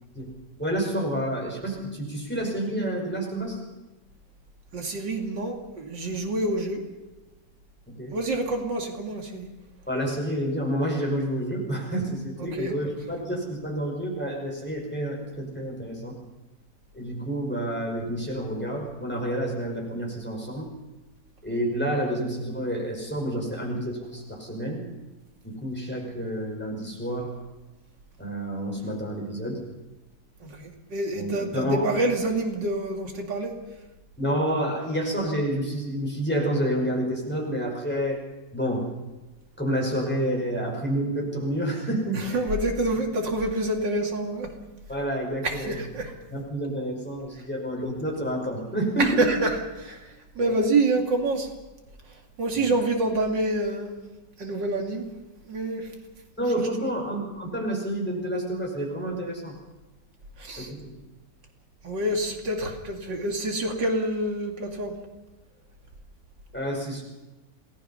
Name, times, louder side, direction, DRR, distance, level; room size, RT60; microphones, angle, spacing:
voice 1, 0.6-3.6 7.9-8.2 9.9-16.2 16.9-20.7 21.4-24.8 25.4-27.3 28.2-29.6 31.1-31.9 34.2-38.2 38.5-39.0 39.6-42.4 44.9-45.8 46.3-49.3 50.4-50.5 52.5-52.8 56.4-59.6 60.6-61.0 66.5-67.0, right 1 dB, 5° left, -1 dB, 5.2 m, -29 dB
voice 2, 4.7-6.8 8.1-9.5 12.4-12.8 30.4-33.5 42.1-44.5 45.4-46.1 49.0-51.5 52.4-53.9 54.4-55.1 55.5-55.9 56.8-56.9 60.4-60.7 61.8-64.9, right 2 dB, 85° right, 2 dB, 3.0 m, -27 dB
27.0 x 19.0 x 5.6 m, 1.1 s
omnidirectional pair, 1.9 m